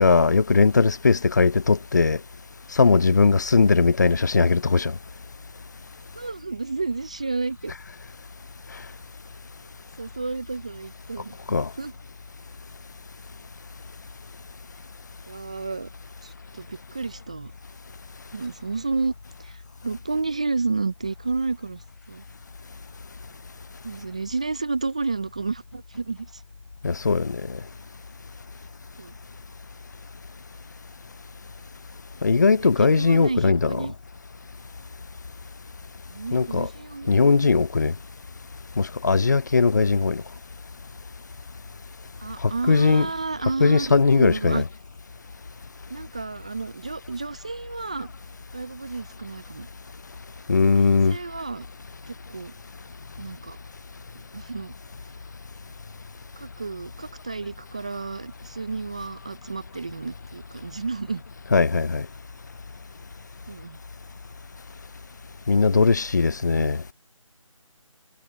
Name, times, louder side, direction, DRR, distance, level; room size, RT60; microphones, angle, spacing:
voice 1, 0.0-2.2 2.7-5.0 11.5-11.7 26.8-27.6 32.2-33.9 36.3-36.7 37.1-37.9 38.8-40.2 42.4-43.1 43.6-44.7 50.5-51.2 61.5-62.1 65.5-66.8, left 4 dB, 30° left, 0.6 m, -19 dB
voice 2, 6.2-7.7 10.0-11.4 11.8-11.9 15.3-15.9 16.2-17.5 18.3-19.1 19.4-22.2 23.8-26.4 29.0-29.2 32.5-33.9 36.1-37.1 42.2-44.6 45.9-48.1 48.5-49.7 50.8-51.7 52.1-52.5 53.2-53.6 54.3-54.7 56.4-61.2 63.5-63.8 66.4-66.7, right 3 dB, 10° right, 0.5 m, -31 dB
figure-of-eight pair, 160°, 18 cm